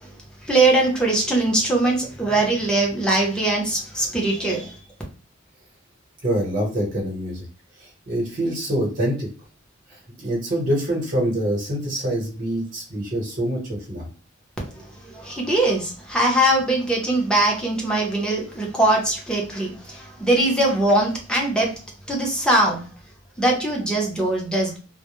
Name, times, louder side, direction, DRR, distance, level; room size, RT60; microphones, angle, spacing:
voice 1, 0.4-4.7 14.8-14.9 15.1-21.7 22.1-22.8 23.4-24.8, right 2 dB, 5° left, -1 dB, 0.7 m, -21 dB
voice 2, 6.2-7.5 7.8-9.3 9.9-14.1, right 1 dB, 45° right, -3 dB, 1.0 m, -25 dB
2.2 x 2.1 x 2.9 m, 0.36 s
head